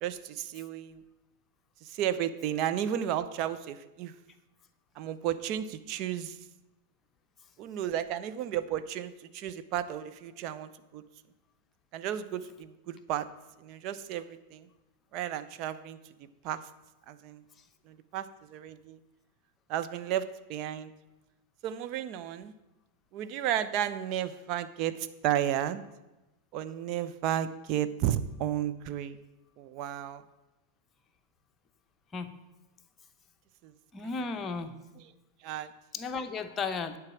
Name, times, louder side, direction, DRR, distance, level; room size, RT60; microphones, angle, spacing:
voice 1, 0.0-1.0 1.9-4.1 5.0-6.3 7.6-11.0 11.9-13.3 13.6-14.6 15.1-16.0 16.4-16.6 17.1-17.4 17.9-18.3 18.5-19.0 19.7-20.9 21.6-22.5 23.1-25.0 25.2-25.8 26.5-29.2 29.6-30.2 35.4-35.7, right 10 dB, 40° right, 11 dB, 0.5 m, -33 dB
voice 2, 33.9-34.7 35.9-37.0, left 4 dB, 20° left, 7 dB, 0.8 m, -34 dB
10.5 x 4.7 x 7.5 m, 1.0 s
figure-of-eight pair, 90°, 0 cm